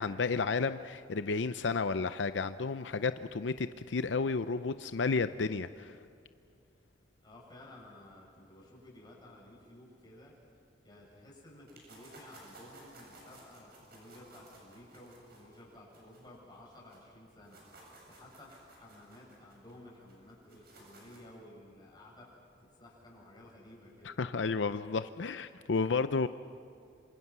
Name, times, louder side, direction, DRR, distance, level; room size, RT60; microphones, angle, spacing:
voice 1, 0.0-6.0 24.0-26.3, left 4 dB, 80° left, 11 dB, 0.6 m, -32 dB
voice 2, 7.2-10.4 10.8-24.1, left 1 dB, 25° left, -3 dB, 7.8 m, -54 dB
sound 1, 11.7-17.0 17.3-21.4, right 2 dB, 60° right, 7.8 m, -56 dB
27.0 x 26.5 x 6.1 m, 2.5 s
head